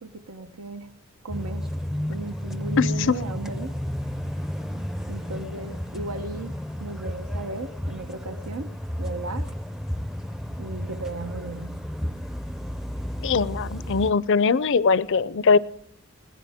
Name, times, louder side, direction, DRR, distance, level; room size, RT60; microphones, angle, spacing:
voice 1, 0.0-0.9 1.2-1.6 2.1-3.8 5.1-8.7 9.0-9.5 10.6-11.8, right 3 dB, 85° right, 10 dB, 0.9 m, -36 dB
sound 1, 1.3-14.1, equal, ahead, 0.5 m, -32 dB
voice 2, 2.8-3.1 13.2-15.6, left 5 dB, 60° left, 19 dB, 0.5 m, -21 dB
21.0 x 17.5 x 3.6 m, 0.66 s
head